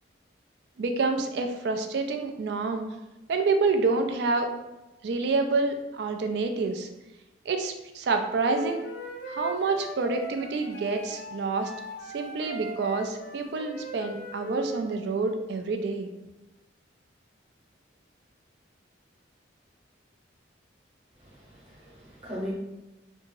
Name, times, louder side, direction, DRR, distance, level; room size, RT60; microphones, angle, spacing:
voice 1, 0.8-2.8 3.3-4.5 5.0-6.9 7.5-8.9 9.3-11.7 12.1-16.1, right 3 dB, 60° right, 6 dB, 0.3 m, -28 dB
Wind instrument woodwind instrument, 8.4-14.8, right 2 dB, 60° left, 0.6 m, -39 dB
voice 2, 21.2-22.5, equal, 30° right, -6 dB, 1.0 m, -39 dB
2.8 x 2.6 x 2.6 m, 1.0 s
head